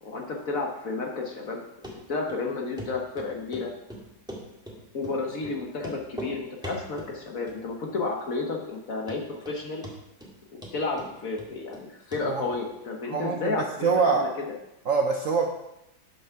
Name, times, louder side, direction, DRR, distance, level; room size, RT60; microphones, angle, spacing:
voice 1, 0.0-1.6 2.1-3.7 4.9-9.8 10.7-14.4, left 3 dB, 50° left, 1 dB, 1.3 m, -32 dB
Run, 1.8-2.0 2.3-2.4 2.8-2.9 3.2-3.7 3.9-4.8 5.0-5.2 5.4-5.5 5.8-6.3 6.6-7.1 7.5-7.9 8.2-8.3 8.7-8.8 9.1-9.6 9.8-10.3 10.6-11.8 12.1-12.2 12.5-12.6, equal, ahead, 1.5 m, -40 dB
voice 2, 13.1-13.6 13.8-14.3 14.9-15.5, right 5 dB, 60° right, 2 dB, 0.9 m, -24 dB
7.1 x 6.2 x 5.7 m, 0.86 s
omnidirectional pair, 2.1 m